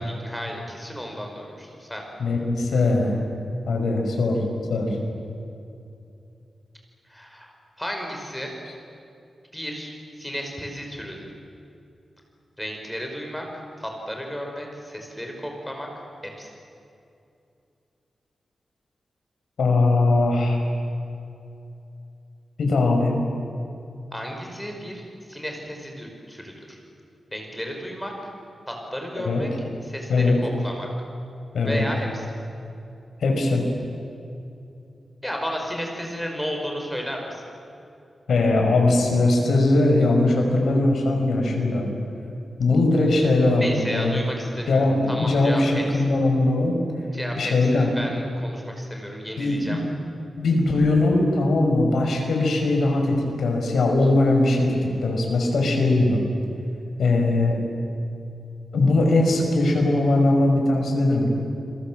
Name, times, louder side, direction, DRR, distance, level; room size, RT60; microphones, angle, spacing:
voice 1, 0.0-2.1 7.1-8.5 9.5-11.3 12.6-15.9 16.4-16.5 24.1-26.8 27.3-28.1 28.7-29.5 29.8-30.9 31.6-32.3 35.2-37.4 43.6-46.0 47.1-49.8, equal, 5° left, 1 dB, 5.3 m, -33 dB
voice 2, 2.2-3.1 3.7-4.4 4.7-5.0 19.6-20.6 22.6-23.2 29.2-29.4 30.1-30.4 31.5-31.8 33.2-33.6 38.3-41.9 42.6-44.2 44.7-46.8 47.4-47.9 49.4-49.8 50.4-56.2 57.0-57.6 58.7-61.3, left 2 dB, 80° left, 2 dB, 5.8 m, -20 dB
29.0 x 22.0 x 7.7 m, 2.6 s
wide cardioid pair, 125°, 0 cm